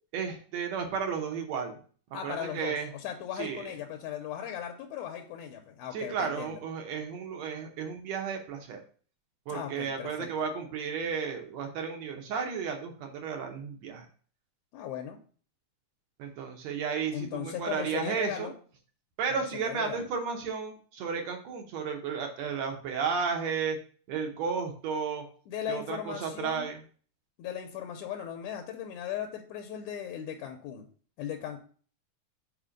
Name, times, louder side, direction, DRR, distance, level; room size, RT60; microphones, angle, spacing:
voice 1, 0.1-1.8 2.2-2.9 3.4-3.7 5.9-8.8 9.5-14.1 16.2-18.5 19.2-23.8 24.1-25.2 25.7-26.8, right 6 dB, 70° right, 3 dB, 1.8 m, -33 dB
voice 2, 2.1-6.6 9.5-10.3 14.7-15.2 17.1-18.5 19.3-20.1 25.5-26.7 27.4-30.9 31.2-31.6, left 9 dB, 75° left, 4 dB, 1.9 m, -38 dB
5.1 x 4.2 x 4.9 m, 0.43 s
omnidirectional pair, 3.8 m